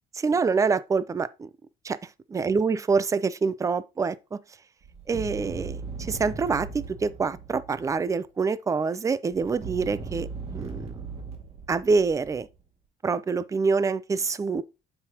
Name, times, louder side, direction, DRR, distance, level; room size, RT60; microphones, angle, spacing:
voice 1, 0.1-1.5 1.8-4.4 5.1-11.0 11.7-12.5 13.0-14.6, right 4 dB, 20° right, 0.4 m, -26 dB
sound 1, 4.8-8.1 9.3-12.6, right 4 dB, 35° right, 2.1 m, -38 dB
7.9 x 5.7 x 2.9 m
cardioid pair, 110°, 17 cm